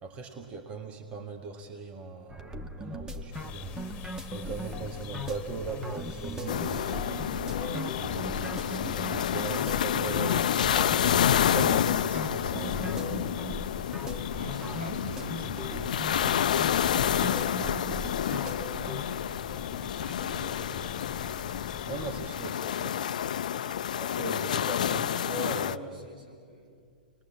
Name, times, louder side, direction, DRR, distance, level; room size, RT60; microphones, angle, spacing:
voice 1, 0.0-3.8 4.3-7.0 8.0-13.2 21.9-23.0 24.0-26.0, right 4 dB, 30° right, 4 dB, 2.0 m, -39 dB
sound 1, 2.3-19.0, equal, 15° right, 1.3 m, -39 dB
sound 2, 3.3-22.3, left 8 dB, 30° left, 1.7 m, -43 dB
voice 2, 4.7-5.2 14.3-19.0 19.5-21.4 22.1-23.0 24.3-26.8, right 1 dB, 90° right, -3 dB, 8.0 m, -47 dB
sound 3, 6.5-25.8, left 10 dB, 65° left, 0.5 m, -29 dB
29.0 x 21.0 x 7.5 m, 2.1 s
figure-of-eight pair, 105°, 5 cm